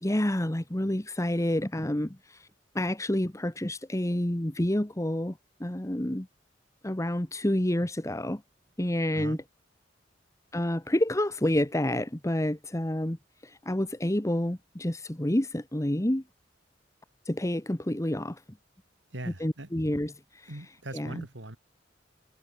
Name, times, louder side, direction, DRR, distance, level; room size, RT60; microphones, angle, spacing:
voice 1, 0.0-2.1 2.7-5.3 5.6-6.3 6.8-8.4 8.8-9.4 10.5-13.2 13.7-16.2 17.3-18.4 19.4-20.1 20.4-20.5 20.9-21.2, left 1 dB, 15° left, 1.2 m, -28 dB
voice 2, 9.1-9.4 19.1-19.7 20.5-21.6, right 1 dB, 80° right, 3.2 m, -40 dB
head